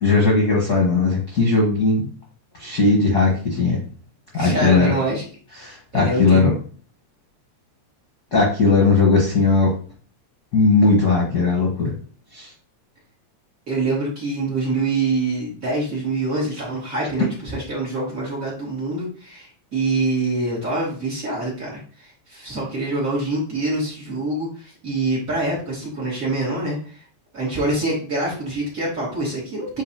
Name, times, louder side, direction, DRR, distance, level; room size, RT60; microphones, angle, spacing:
voice 1, 0.0-2.1 2.6-3.8 4.3-4.9 5.6-6.5 8.3-9.7 10.5-11.9 12.3-12.5, left 3 dB, 45° left, -3 dB, 1.4 m, -18 dB
voice 2, 4.3-5.2 5.9-6.4 13.7-27.0 27.3-29.8, right 2 dB, 30° right, -5 dB, 2.7 m, -25 dB
8.6 x 3.9 x 2.9 m, 0.41 s
omnidirectional pair, 3.4 m